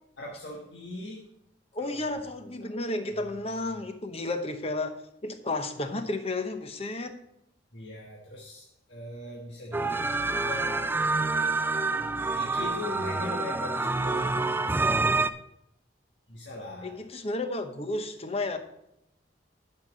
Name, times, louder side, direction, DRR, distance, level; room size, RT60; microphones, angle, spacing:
voice 1, 0.2-1.3 1.8-2.2 2.6-2.8 3.1-3.7 7.7-10.9 12.3-14.6 16.3-17.0, left 1 dB, 75° left, -1 dB, 1.4 m, -41 dB
voice 2, 1.7-5.0 5.2-7.2 16.8-18.6, left 2 dB, 35° left, 8 dB, 0.9 m, -32 dB
sound 1, 9.7-15.3, right 3 dB, 10° right, 0.3 m, -27 dB
10.5 x 5.6 x 5.1 m, 0.80 s
head